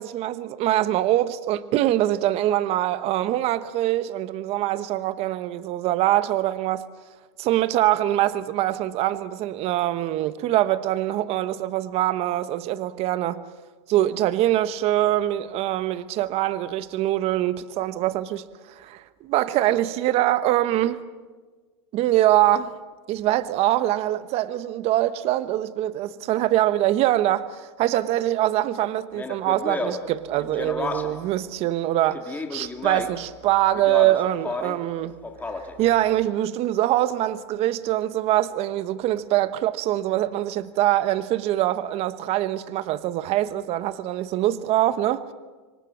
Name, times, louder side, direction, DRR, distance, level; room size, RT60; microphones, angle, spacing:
voice 1, 0.0-6.8 7.4-13.4 13.9-18.5 18.8-21.0 21.9-22.8 23.1-35.2 35.8-45.2, right 14 dB, 40° right, 1.1 m, -23 dB
Speech, 29.1-31.3 32.1-33.3 33.7-34.9 35.2-35.9, left 3 dB, 10° left, 2.3 m, -32 dB
26.5 x 23.5 x 7.4 m
hypercardioid pair, 125°, 15 cm